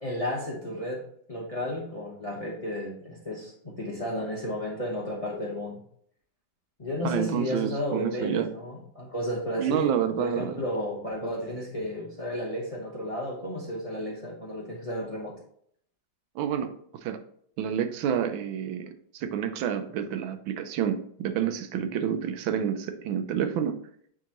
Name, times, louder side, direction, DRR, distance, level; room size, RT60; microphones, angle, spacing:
voice 1, 0.0-1.0 1.3-5.8 6.8-15.3, left 1 dB, 30° left, -2 dB, 0.7 m, -33 dB
voice 2, 7.0-8.5 9.6-10.6 16.3-16.7 17.0-17.2 17.6-23.8, right 9 dB, 85° right, 9 dB, 1.4 m, -29 dB
8.9 x 3.6 x 3.0 m, 0.64 s
omnidirectional pair, 2.1 m